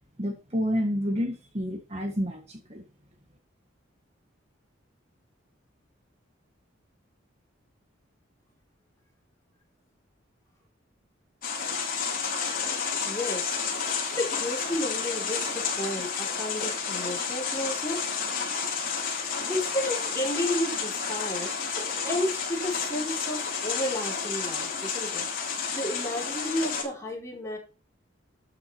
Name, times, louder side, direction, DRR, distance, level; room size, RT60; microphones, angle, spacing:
voice 1, 0.2-2.8, equal, 30° right, 4 dB, 1.6 m, -29 dB
sound 1, 11.4-26.8, left 5 dB, 45° left, 4.4 m, -31 dB
voice 2, 13.0-13.6 13.9-18.0 19.5-21.5 22.0-25.3 25.7-27.6, left 1 dB, 15° left, -2 dB, 5.1 m, -32 dB
12.5 x 7.6 x 4.5 m, 0.31 s
head